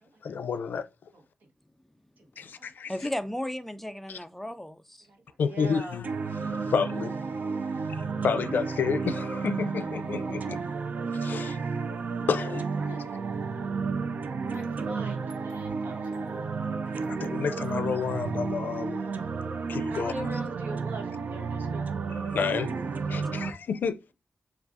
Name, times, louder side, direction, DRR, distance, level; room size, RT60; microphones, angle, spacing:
voice 1, 0.2-0.9 2.4-2.9 4.1-4.2 5.4-6.1 6.4-7.1 7.9-10.6 11.1-11.6 12.3-12.7 17.1-19.0 19.7-20.3 22.1-22.7 23.1-24.1, left 6 dB, 85° left, 0.4 m, -30 dB
voice 2, 2.9-5.1, left 1 dB, 5° left, 0.3 m, -34 dB
voice 3, 5.1-6.0 10.8-10.9 12.8-13.3 14.4-16.3 19.9-21.9, right 2 dB, 80° right, 1.1 m, -42 dB
sound 1, 6.0-23.5, right 4 dB, 60° right, 0.4 m, -32 dB
sound 2, 14.5-19.5, right 2 dB, 25° right, 1.0 m, -58 dB
7.0 x 2.3 x 2.5 m
wide cardioid pair, 160°, 3 cm